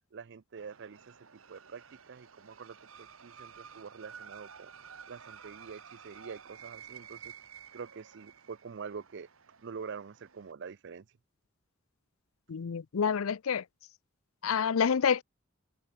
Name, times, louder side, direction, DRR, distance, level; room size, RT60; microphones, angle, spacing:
voice 1, 0.1-4.7 5.1-7.3 7.7-9.3 9.6-11.1, right 5 dB, 60° right, 0.5 m, -45 dB
sound 1, 0.6-10.5, right 7 dB, 75° right, 1.4 m, -52 dB
voice 2, 12.5-13.6 14.4-15.2, left 6 dB, 80° left, 0.5 m, -28 dB
head